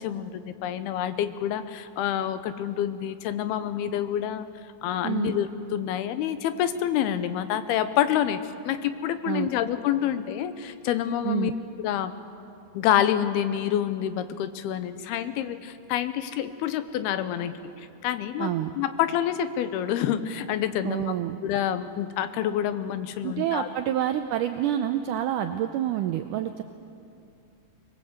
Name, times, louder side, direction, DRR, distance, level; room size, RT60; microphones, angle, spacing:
voice 1, 0.0-4.5 4.8-8.4 8.6-11.5 11.8-12.1 12.7-18.5 18.8-21.1 21.4-23.7, left 10 dB, 85° left, 11 dB, 2.8 m, -27 dB
voice 2, 5.0-5.3 9.2-9.5 11.2-11.5 18.4-18.7 20.8-21.4 23.2-26.6, right 11 dB, 80° right, 8 dB, 1.8 m, -28 dB
24.0 x 20.5 x 8.1 m, 2.6 s
omnidirectional pair, 4.4 m